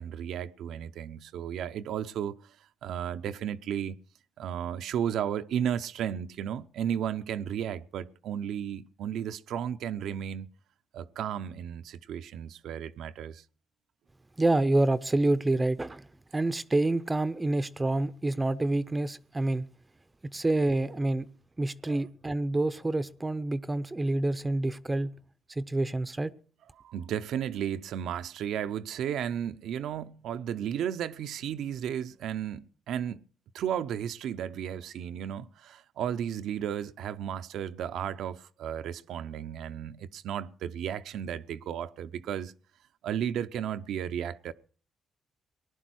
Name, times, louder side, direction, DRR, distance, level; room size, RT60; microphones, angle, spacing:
voice 1, 0.0-2.6 2.8-4.0 4.4-10.5 10.9-13.4 21.9-22.0 26.8-33.2 33.5-42.5 43.0-44.5, right 9 dB, 80° right, 0.7 m, -34 dB
voice 2, 14.4-16.1 16.3-19.7 20.2-21.3 21.6-25.1 25.5-26.3, right 2 dB, 20° right, 0.6 m, -27 dB
19.0 x 11.0 x 6.3 m
cardioid pair, 90°, 0 cm